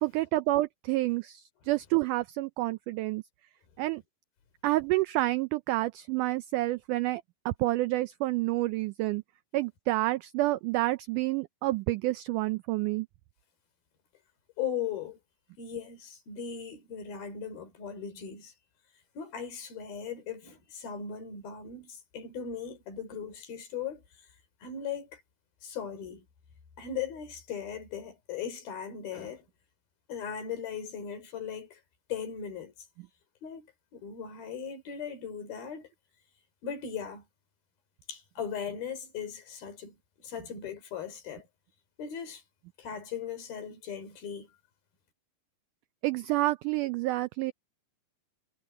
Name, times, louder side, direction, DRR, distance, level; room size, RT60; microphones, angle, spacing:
voice 1, 0.0-3.2 3.8-4.0 4.6-9.2 9.5-13.1 46.0-47.5, right 18 dB, 85° right, 1.8 m, -29 dB
voice 2, 14.6-15.2 15.6-18.5 19.2-24.0 24.6-25.2 25.6-26.2 26.8-29.4 30.1-31.8 32.1-32.7 33.4-35.9 36.6-37.2 38.1-39.9 40.2-41.5 42.0-42.4 42.8-44.5, left 7 dB, 80° left, 5.5 m, -38 dB
omnidirectional pair, 4.2 m